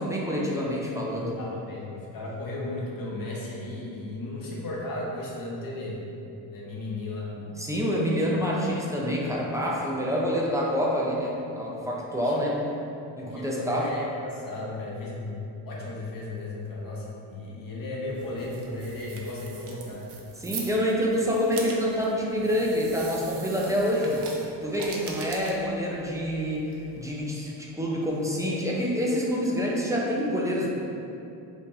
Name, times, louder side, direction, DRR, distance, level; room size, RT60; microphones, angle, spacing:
voice 1, 0.0-1.3 7.4-12.6 13.2-13.9 20.4-24.2 24.6-26.7 27.0-30.7, equal, 5° right, -4 dB, 0.4 m, -27 dB
voice 2, 1.4-6.0 6.5-7.3 12.2-12.4 13.2-20.1 25.3-25.5, left 2 dB, 45° left, -4 dB, 0.8 m, -35 dB
sound 1, 18.1-27.3, right 4 dB, 60° right, 0.6 m, -43 dB
2.8 x 2.5 x 3.7 m, 2.7 s
cardioid pair, 90°, 47 cm